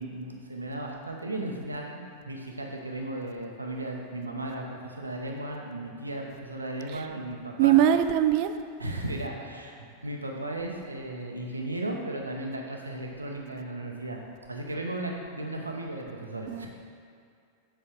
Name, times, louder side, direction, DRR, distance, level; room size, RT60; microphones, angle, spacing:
voice 1, 0.0-7.8 8.8-14.2 14.5-16.7, right 1 dB, 90° right, 1 dB, 0.8 m, -35 dB
voice 2, 7.6-8.5 16.5-16.7, right 11 dB, 50° right, 9 dB, 0.4 m, -21 dB
7.0 x 4.5 x 4.5 m, 2.3 s
figure-of-eight pair, 90°, 0 cm